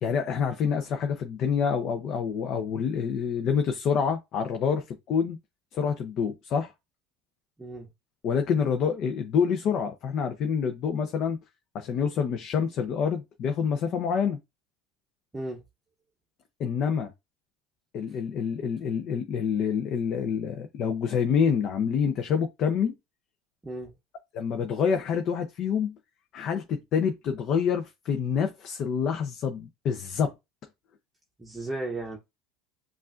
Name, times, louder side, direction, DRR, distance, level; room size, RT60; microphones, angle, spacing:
voice 1, 0.0-5.4 5.7-6.7 8.2-11.4 11.7-14.4 16.6-17.1 17.9-22.9 24.3-25.9 26.3-30.3, left 7 dB, 50° left, 0.6 m, -27 dB
voice 2, 31.4-32.2, right 2 dB, 15° right, 0.8 m, -34 dB
5.4 x 2.5 x 2.4 m
supercardioid pair, 110°, 0 cm